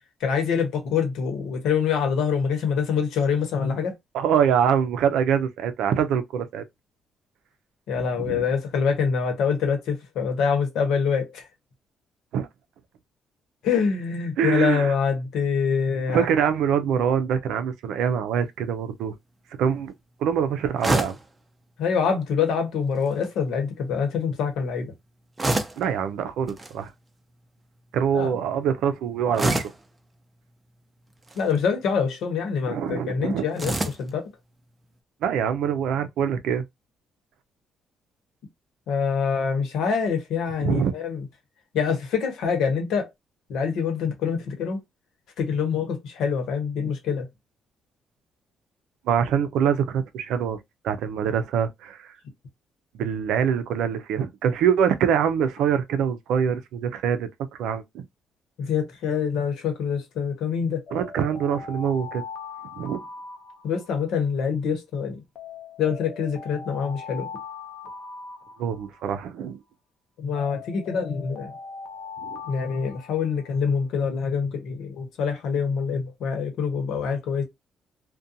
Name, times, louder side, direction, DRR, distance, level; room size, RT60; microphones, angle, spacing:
voice 1, 0.2-3.9 7.9-11.5 13.6-16.3 21.8-24.9 28.1-28.3 31.3-34.2 38.9-41.2 41.7-43.1 43.5-44.8 45.4-47.2 58.6-60.8 63.6-65.2 65.8-67.3 70.2-71.5 72.5-77.4, left 6 dB, 85° left, 0.9 m, -25 dB
voice 2, 4.1-6.6 7.9-8.4 12.3-12.5 14.4-14.9 16.1-19.2 19.6-19.9 20.2-21.1 25.8-26.9 27.9-29.7 32.7-33.4 35.2-36.6 40.6-40.9 49.1-50.6 50.8-52.1 52.9-57.3 57.6-58.0 60.9-62.2 62.7-63.0 68.6-69.6 72.2-72.4, right 8 dB, 85° right, 0.4 m, -24 dB
sound 1, 20.8-21.3 23.0-23.3 25.4-25.9 26.5-26.7 29.3-29.9 31.2-31.6 33.6-34.1, right 2 dB, 20° right, 0.6 m, -26 dB
Alarm, 60.9-64.2 65.4-69.2 70.4-73.6, left 5 dB, 55° left, 0.6 m, -40 dB
2.5 x 2.2 x 2.6 m
cardioid pair, 90°, 0 cm